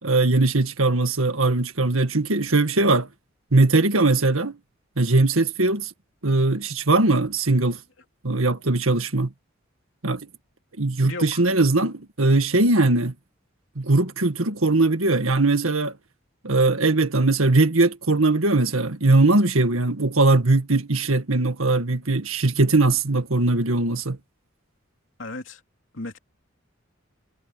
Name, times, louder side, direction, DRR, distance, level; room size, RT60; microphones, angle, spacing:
voice 1, 0.0-3.1 3.5-4.6 5.0-5.9 6.2-7.8 8.2-9.3 10.0-10.2 10.8-13.1 13.7-15.9 16.4-24.2, right 2 dB, 90° right, 1.8 m, -20 dB
voice 2, 11.0-11.4 25.2-25.6 25.9-26.2, left 2 dB, 65° left, 3.0 m, -35 dB
head